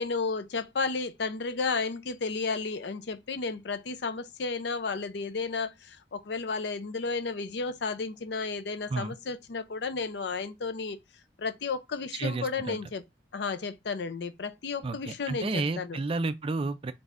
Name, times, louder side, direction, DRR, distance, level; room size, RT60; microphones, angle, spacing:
voice 1, 0.0-11.0 11.4-13.0 13.3-16.0, left 4 dB, 70° left, 0.5 m, -33 dB
voice 2, 12.2-12.8 14.8-16.9, right 3 dB, 30° right, 0.4 m, -31 dB
4.2 x 3.4 x 2.5 m
head